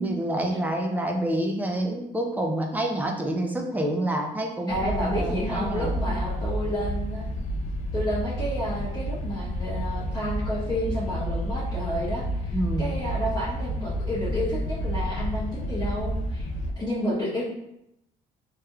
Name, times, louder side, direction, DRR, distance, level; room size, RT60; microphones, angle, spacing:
voice 1, 0.0-5.9 12.5-12.9, right 1 dB, 10° right, 2 dB, 0.5 m, -28 dB
sound 1, 4.7-16.7, equal, 50° left, 0.4 m, -30 dB
voice 2, 4.7-7.3 7.9-16.5 16.8-17.4, equal, 20° left, -10 dB, 1.0 m, -30 dB
3.4 x 3.0 x 2.3 m, 0.82 s
cardioid pair, 110°, 17 cm